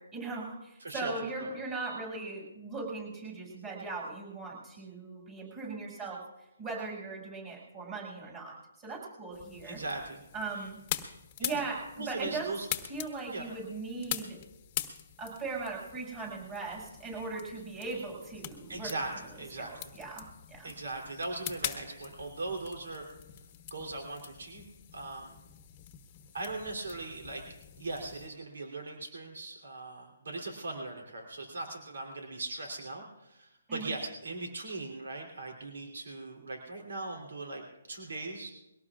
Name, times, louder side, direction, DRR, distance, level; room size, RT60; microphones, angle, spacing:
voice 1, 0.0-6.2 6.6-9.8 10.3-10.8 11.4-12.5 12.9-14.4 15.2-19.0 19.6-20.7 33.7-33.9, right 3 dB, 20° right, -2 dB, 6.7 m, -39 dB
voice 2, 0.8-1.1 1.4-1.5 9.6-10.2 10.5-10.7 11.4-11.6 12.0-12.6 13.3-13.5 18.7-19.9 20.6-23.1 23.7-24.7 24.9-25.4 26.3-27.4 27.8-38.5, right 2 dB, 80° right, 1 dB, 3.3 m, -39 dB
sound 1, 9.3-28.3, left 11 dB, 30° left, 1.2 m, -43 dB
22.5 x 18.0 x 2.5 m, 0.93 s
hypercardioid pair, 155°, 0 cm